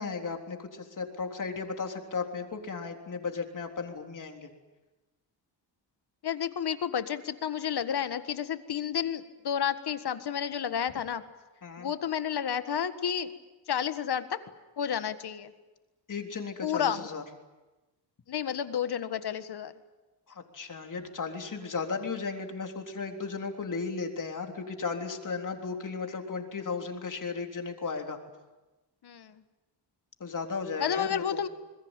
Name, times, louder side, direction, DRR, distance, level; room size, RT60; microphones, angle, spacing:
voice 1, 0.0-4.5 11.6-11.9 16.1-17.2 20.3-28.2 30.2-31.4, left 4 dB, 45° left, 4 dB, 3.6 m, -35 dB
voice 2, 6.2-11.2 11.8-13.3 13.7-14.4 14.8-15.5 16.6-17.1 18.3-19.7 29.0-29.3 30.8-31.5, left 8 dB, 60° left, 11 dB, 1.7 m, -31 dB
28.0 x 21.0 x 9.0 m, 1.1 s
cardioid pair, 100°, 44 cm